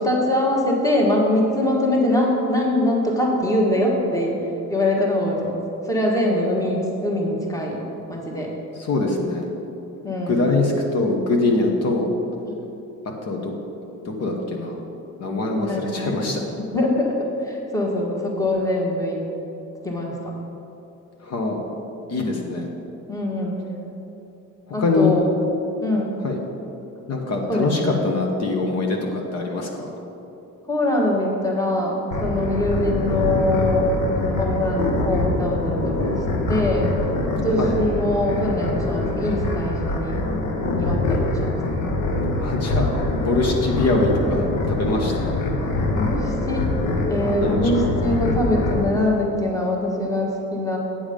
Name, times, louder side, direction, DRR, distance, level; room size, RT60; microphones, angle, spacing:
voice 1, 0.0-4.3 4.7-5.6 5.8-7.8 8.1-8.5 10.0-10.5 15.5-16.1 16.6-19.2 19.8-20.2 23.1-23.6 24.7-25.2 25.8-26.2 27.5-28.0 30.6-33.9 34.2-36.2 36.5-36.9 37.4-40.2 40.8-41.6 45.9-46.7 47.1-50.8, left 1 dB, 10° left, -2 dB, 1.4 m, -23 dB
voice 2, 8.8-9.4 10.3-12.1 13.2-13.5 14.0-14.8 15.2-16.4 21.2-21.6 22.1-22.7 24.8-25.1 26.2-26.4 27.1-29.9 37.6-37.8 42.4-42.9 43.1-45.3 47.4-47.6, left 3 dB, 55° left, 1 dB, 1.1 m, -23 dB
sound 1, 32.1-48.8, left 2 dB, 75° left, 1.2 m, -24 dB
8.9 x 7.1 x 5.1 m, 2.9 s
cardioid pair, 130°, 31 cm